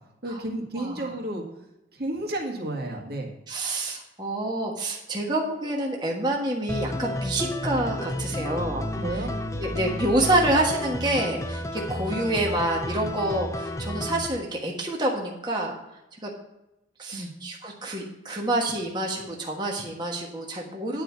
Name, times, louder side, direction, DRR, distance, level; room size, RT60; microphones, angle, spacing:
voice 1, 0.2-1.5 1.9-3.3 8.9-9.3 17.1-17.3, right 1 dB, 55° right, 0 dB, 1.9 m, -31 dB
voice 2, 0.7-1.1 3.5-9.2 9.6-15.8 16.2-16.3 17.0-21.0, right 1 dB, 25° right, -1 dB, 1.4 m, -27 dB
sound 1, 6.7-14.3, left 1 dB, 15° left, 0.6 m, -31 dB
10.0 x 4.8 x 7.1 m, 0.92 s
head